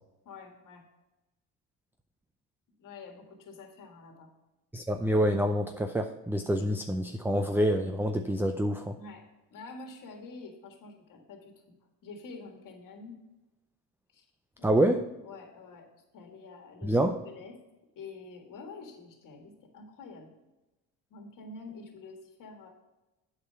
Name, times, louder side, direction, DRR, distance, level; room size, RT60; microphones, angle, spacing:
voice 1, 0.3-0.8 2.8-4.3 9.0-9.2 9.5-11.5 12.0-13.2 14.1-14.3 14.6-14.8 15.2-15.9 16.1-17.0 17.2-17.6 18.0-20.3 21.1-22.7, left 3 dB, 55° left, 3 dB, 1.8 m, -47 dB
voice 2, 4.7-8.9 14.6-15.1 16.8-17.2, right 1 dB, 5° right, 5 dB, 0.5 m, -27 dB
8.4 x 4.8 x 5.7 m, 1.0 s
supercardioid pair, 85°, 38 cm